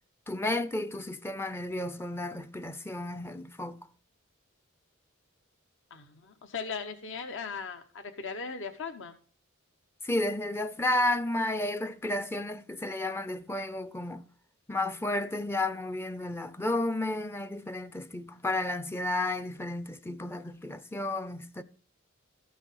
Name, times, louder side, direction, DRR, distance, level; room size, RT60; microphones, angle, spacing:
voice 1, 0.3-3.8 10.0-14.2 14.7-21.6, left 1 dB, 10° left, 0.5 m, -32 dB
voice 2, 5.9-9.2, left 5 dB, 65° left, 1.0 m, -38 dB
13.5 x 6.2 x 5.6 m
head